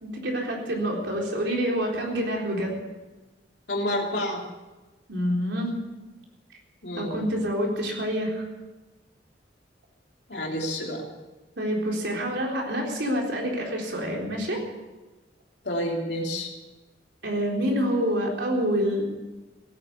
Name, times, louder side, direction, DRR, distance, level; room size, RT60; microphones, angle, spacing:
voice 1, 0.0-2.7 5.1-5.7 7.0-8.4 11.6-14.6 17.2-19.1, equal, 75° right, -1 dB, 4.0 m, -27 dB
voice 2, 3.7-4.4 6.8-7.2 10.3-11.0 15.6-16.5, left 1 dB, 70° left, 0 dB, 3.1 m, -29 dB
16.5 x 9.6 x 8.3 m, 1.2 s
head